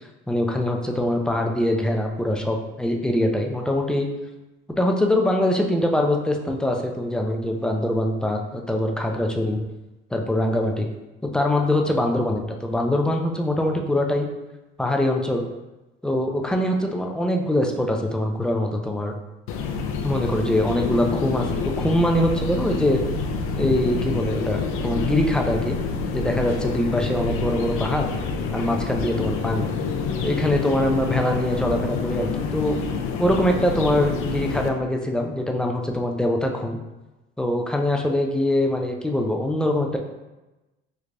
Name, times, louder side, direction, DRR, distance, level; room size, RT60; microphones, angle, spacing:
voice 1, 0.3-4.1 4.8-9.6 10.1-10.9 11.3-14.3 14.8-15.4 16.0-19.1 20.0-21.5 21.8-23.0 23.6-25.8 26.1-28.1 28.5-29.7 30.2-32.8 33.2-36.8 37.4-40.0, left 1 dB, 5° left, 2 dB, 0.3 m, -23 dB
sound 1, 19.5-34.7, left 4 dB, 80° left, 0.4 m, -27 dB
3.3 x 3.2 x 2.5 m, 1.0 s
cardioid pair, 130°, 21 cm